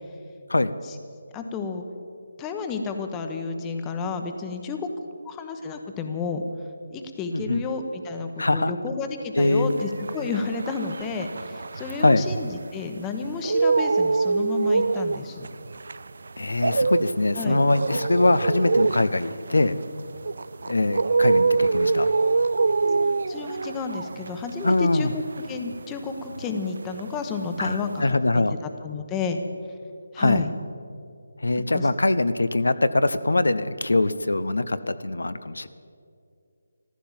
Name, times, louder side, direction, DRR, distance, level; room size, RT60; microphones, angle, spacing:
voice 1, 1.3-1.8 2.4-4.9 5.2-6.4 6.9-15.5 17.4-17.6 23.3-29.4 30.1-30.5 31.7-31.9, left 4 dB, 15° left, 6 dB, 1.0 m, -31 dB
voice 2, 7.3-7.6 8.4-8.7 9.4-9.9 12.0-12.2 16.4-19.7 20.6-22.1 24.6-25.1 27.6-28.6 30.2-30.5 31.4-35.7, left 2 dB, 85° left, 13 dB, 0.7 m, -22 dB
sound 1, 9.6-12.9 13.2-26.7 26.9-28.0, right 4 dB, 65° right, 0.3 m, -25 dB
14.5 x 12.5 x 7.4 m, 2.4 s
figure-of-eight pair, 160°, 0 cm